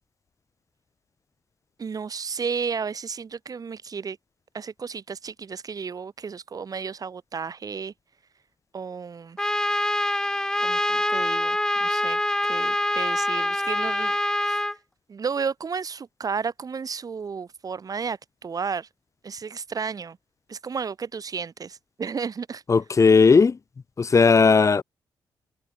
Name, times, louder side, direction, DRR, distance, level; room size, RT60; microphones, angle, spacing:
voice 1, 1.8-4.2 4.5-7.9 8.7-9.4 10.6-12.2 12.5-14.6 15.1-18.9 19.2-20.2 20.5-22.6, right 5 dB, 45° right, 3.8 m, -33 dB
Trumpet, 9.4-14.7, left 1 dB, 5° left, 2.8 m, -25 dB
voice 2, 22.7-23.6 24.0-24.8, left 5 dB, 35° left, 1.3 m, -16 dB
cardioid pair, 80°, 8 cm